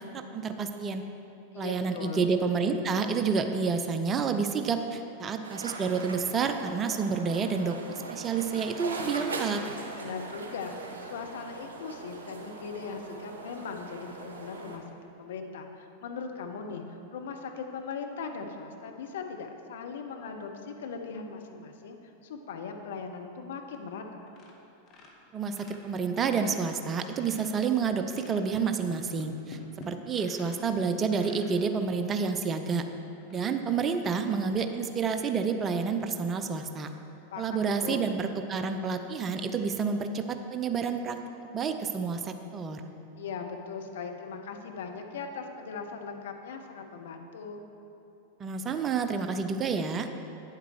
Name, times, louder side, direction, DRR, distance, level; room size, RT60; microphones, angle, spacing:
voice 1, 0.1-1.0 1.6-7.8 8.1-9.6 25.3-32.9 33.3-36.9 37.4-41.2 41.5-42.9 48.4-50.1, right 5 dB, 25° right, 7 dB, 0.5 m, -29 dB
voice 2, 1.5-2.3 10.0-10.8 11.0-14.8 15.2-16.8 17.1-22.0 22.2-24.2 37.3-38.1 43.2-47.6, left 5 dB, 60° left, 4 dB, 0.8 m, -39 dB
sound 1, 5.4-14.8, right 3 dB, 65° right, 1.0 m, -41 dB
sound 2, 23.6-24.0 24.3-24.6 24.8-27.6 28.0-30.7 31.1-31.5 32.2-32.3 32.7-32.8 33.2-33.5, left 2 dB, 35° left, 1.2 m, -50 dB
9.3 x 7.5 x 4.7 m, 2.9 s
figure-of-eight pair, 90°, 0 cm